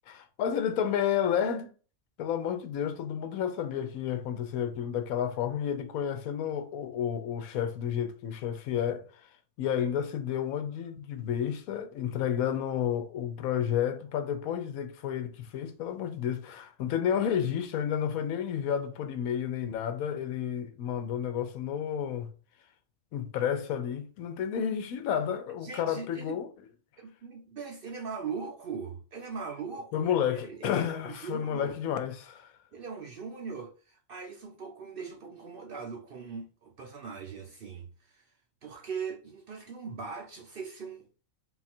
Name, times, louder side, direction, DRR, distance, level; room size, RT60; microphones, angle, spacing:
voice 1, 0.1-1.7 2.2-9.0 9.6-22.3 23.1-26.5 29.9-32.5, left 9 dB, 90° left, 1.1 m, -31 dB
voice 2, 25.6-26.4 27.0-31.8 32.7-38.3 38.6-41.1, right 5 dB, 60° right, 0.6 m, -40 dB
3.8 x 2.4 x 4.2 m
omnidirectional pair, 1.4 m